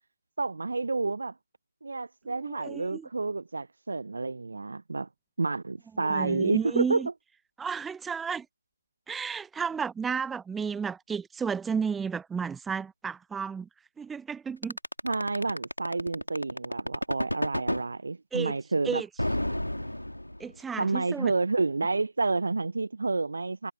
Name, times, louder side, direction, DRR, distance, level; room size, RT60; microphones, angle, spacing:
voice 1, 0.4-1.3 1.8-5.1 5.4-7.0 15.0-19.0 20.8-23.7, right 3 dB, 45° right, 0.6 m, -29 dB
voice 2, 2.4-3.1 6.0-7.1 7.6-8.5 9.1-13.7 14.0-14.8 18.3-18.6 18.8-19.1 20.4-21.3, right 6 dB, 5° right, 0.4 m, -32 dB
sound 1, 14.6-17.9 19.2-20.6, left 1 dB, 85° left, 2.6 m, -30 dB
figure-of-eight pair, 165°, 0 cm